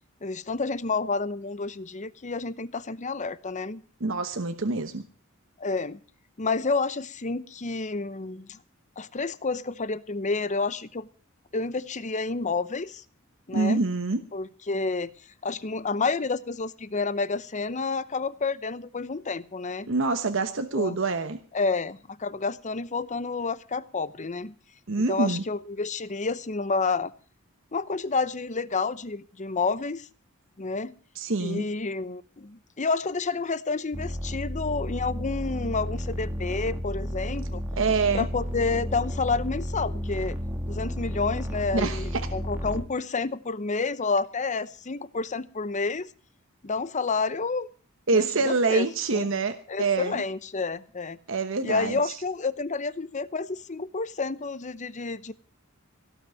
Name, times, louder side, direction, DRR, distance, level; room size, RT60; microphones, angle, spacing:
voice 1, 0.2-3.8 5.6-6.0 6.4-8.6 9.0-11.1 11.5-13.0 13.5-13.8 14.3-15.1 15.4-19.9 20.7-21.0 21.5-24.5 25.0-27.1 27.7-30.1 30.6-30.9 31.4-37.6 38.1-40.4 40.7-46.1 46.6-47.7 48.1-49.3 49.7-51.2 51.6-55.3, left 4 dB, 35° left, 16 dB, 0.8 m, -29 dB
voice 2, 4.0-5.0 13.5-14.2 19.9-21.4 24.9-25.4 31.2-31.6 37.8-38.3 41.7-42.2 48.1-50.2 51.3-52.1, right 3 dB, 65° right, 8 dB, 1.1 m, -26 dB
sound 1, 33.9-42.8, equal, 10° right, 1.5 m, -32 dB
17.5 x 6.1 x 9.0 m, 0.41 s
head